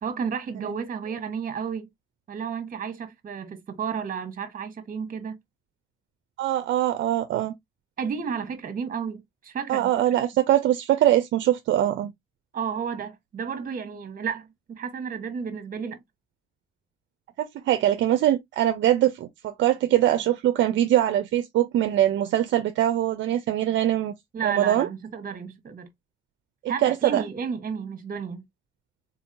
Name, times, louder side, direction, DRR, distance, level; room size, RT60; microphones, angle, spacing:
voice 1, 0.0-1.9 2.3-5.4 8.0-10.2 12.5-16.0 24.3-25.9 26.7-28.4, right 6 dB, 45° right, 1.1 m, -32 dB
voice 2, 6.4-7.5 9.7-12.1 17.4-24.1 24.4-24.9 26.8-27.2, right 12 dB, 70° right, 0.5 m, -22 dB
4.0 x 2.7 x 2.5 m
cardioid pair, 90°, 20 cm